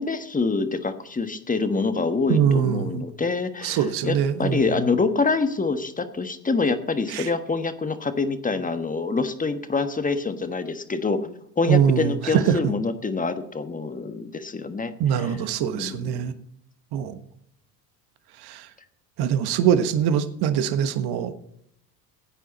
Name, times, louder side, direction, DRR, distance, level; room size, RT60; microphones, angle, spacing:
voice 1, 0.0-16.2, left 4 dB, 15° left, 9 dB, 1.4 m, -26 dB
voice 2, 2.3-3.0 3.6-4.6 7.1-7.3 11.7-12.7 15.0-16.3 16.9-17.1 18.4-18.6 19.2-21.3, right 8 dB, 50° right, 10 dB, 1.4 m, -22 dB
16.0 x 9.0 x 4.2 m, 0.71 s
hypercardioid pair, 75°, 48 cm